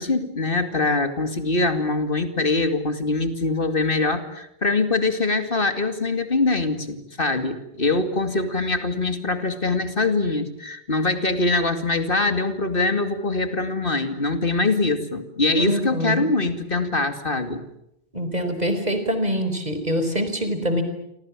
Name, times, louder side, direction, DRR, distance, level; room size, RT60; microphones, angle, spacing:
voice 1, 0.0-17.6, left 3 dB, 60° left, 9 dB, 2.6 m, -23 dB
voice 2, 15.6-16.3 18.1-20.8, equal, 40° right, 8 dB, 4.9 m, -24 dB
29.5 x 25.0 x 7.5 m, 0.81 s
omnidirectional pair, 1.1 m